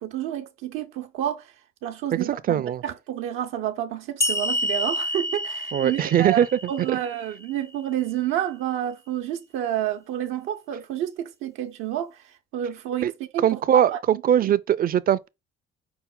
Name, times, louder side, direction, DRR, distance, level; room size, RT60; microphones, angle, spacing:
voice 1, 0.0-1.5 1.8-12.2 12.5-14.0 14.4-14.5, right 11 dB, 80° right, 0.7 m, -29 dB
voice 2, 2.1-2.8 5.7-7.0 13.0-13.1 13.4-15.3, right 10 dB, 45° right, 0.5 m, -21 dB
sound 1, 4.2-7.6, left 1 dB, 15° left, 0.4 m, -29 dB
5.7 x 2.1 x 3.7 m
cardioid pair, 100°, 21 cm